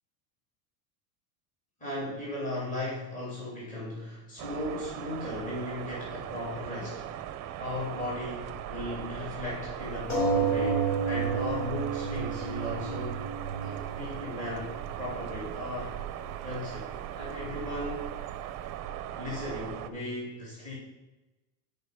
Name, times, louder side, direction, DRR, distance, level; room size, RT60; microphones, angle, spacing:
voice 1, 1.8-7.1 7.6-13.3 13.6-15.9 16.4-16.9 17.2-18.1 19.2-20.8, left 1 dB, 20° left, -7 dB, 2.9 m, -37 dB
sound 1, 4.4-19.9, right 11 dB, 40° right, 0.5 m, -39 dB
sound 2, 10.1-15.1 15.9-16.0 16.3-16.4, right 5 dB, 75° left, 3.1 m, -30 dB
9.1 x 5.0 x 5.1 m, 1.1 s
cardioid pair, 155°, 42 cm